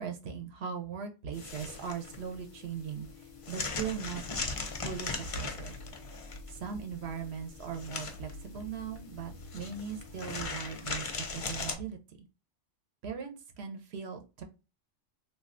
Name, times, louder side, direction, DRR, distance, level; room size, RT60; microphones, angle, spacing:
voice 1, 0.0-3.1 3.5-4.2 4.8-5.8 6.5-11.1 11.3-12.0 13.0-14.4, right 7 dB, 65° right, 4 dB, 0.8 m, -39 dB
sound 1, 1.3-11.7, left 4 dB, 55° left, 0.3 m, -39 dB
3.3 x 2.6 x 2.4 m, 0.29 s
omnidirectional pair, 1.3 m